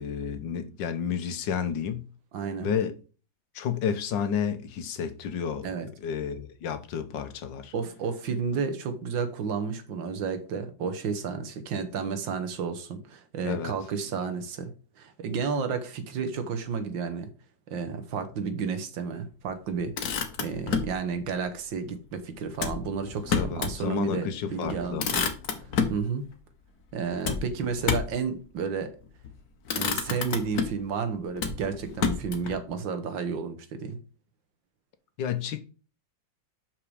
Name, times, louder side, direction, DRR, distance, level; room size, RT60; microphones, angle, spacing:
voice 1, 0.0-2.1 2.6-3.0 3.5-5.7 6.0-7.7 13.4-13.7 23.4-25.1 35.2-35.6, left 7 dB, 75° left, 1.6 m, -31 dB
voice 2, 2.3-2.7 5.6-5.9 7.7-17.3 17.7-20.1 20.4-25.3 25.9-26.2 26.9-28.9 29.8-34.0, right 5 dB, 75° right, 1.9 m, -32 dB
Motor vehicle (road), 19.7-21.0 22.5-23.8 24.2-24.3 24.6-26.0 27.2-28.2 29.1-29.3 29.6-30.9 31.4-32.6, left 6 dB, 55° left, 1.5 m, -29 dB
6.1 x 5.9 x 4.9 m
omnidirectional pair, 2.1 m